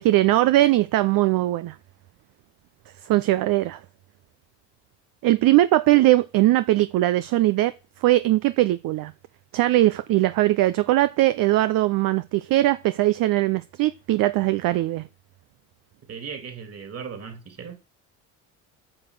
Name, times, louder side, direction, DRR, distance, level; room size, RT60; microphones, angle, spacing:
voice 1, 0.0-1.7 3.1-3.8 5.2-7.7 8.0-9.1 9.5-15.0, right 16 dB, 60° right, 0.7 m, -20 dB
voice 2, 16.1-17.8, right 6 dB, 40° right, 3.0 m, -37 dB
8.9 x 6.0 x 6.5 m
supercardioid pair, 80°, 39 cm